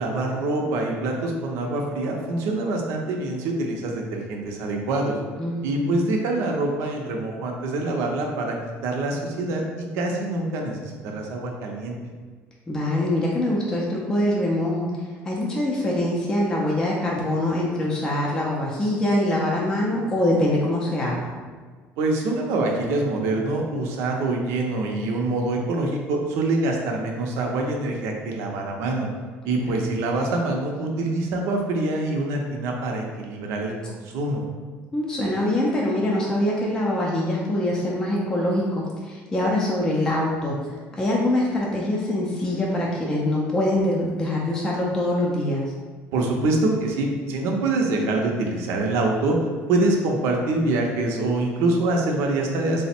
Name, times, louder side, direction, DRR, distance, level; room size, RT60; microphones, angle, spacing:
voice 1, 0.0-5.2 5.6-8.6 8.8-12.0 22.0-29.1 29.4-34.4 46.1-49.4 49.7-52.9, right 2 dB, 70° right, 1 dB, 0.6 m, -25 dB
voice 2, 5.4-6.0 12.7-14.9 15.2-21.3 29.6-29.9 34.9-45.6, left 1 dB, 15° left, -4 dB, 0.4 m, -24 dB
3.3 x 2.1 x 4.2 m, 1.5 s
cardioid pair, 170°, 5 cm